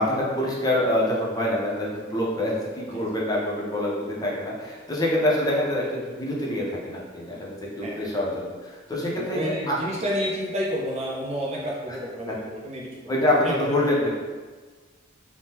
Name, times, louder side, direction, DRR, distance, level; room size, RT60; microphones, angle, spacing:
voice 1, 0.0-9.5 12.3-12.4 13.1-14.1, left 1 dB, 20° left, -4 dB, 0.5 m, -26 dB
voice 2, 7.8-8.2 9.1-14.1, equal, 35° right, -4 dB, 0.4 m, -31 dB
3.5 x 2.0 x 2.8 m, 1.4 s
head